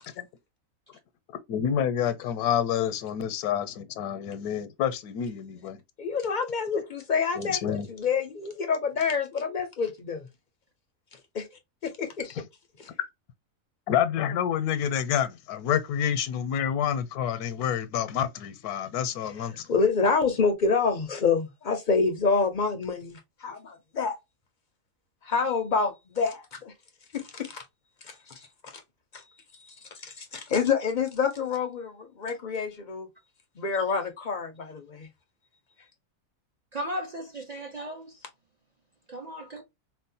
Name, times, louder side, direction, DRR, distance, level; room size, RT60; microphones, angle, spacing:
voice 1, 1.5-5.8 7.3-7.9 12.3-12.4 13.9-19.7, left 9 dB, 85° left, 1.1 m, -28 dB
voice 2, 6.0-10.2 11.3-11.5 11.8-12.3 12.8-12.9 19.7-24.1 25.2-26.7 27.1-27.6 28.0-28.3 28.6-28.8 29.1-29.2 30.0-33.1 33.6-35.1, left 5 dB, 65° left, 0.4 m, -27 dB
voice 3, 36.7-38.2 39.1-39.6, equal, 70° right, 0.4 m, -36 dB
4.2 x 2.0 x 2.6 m
omnidirectional pair, 1.6 m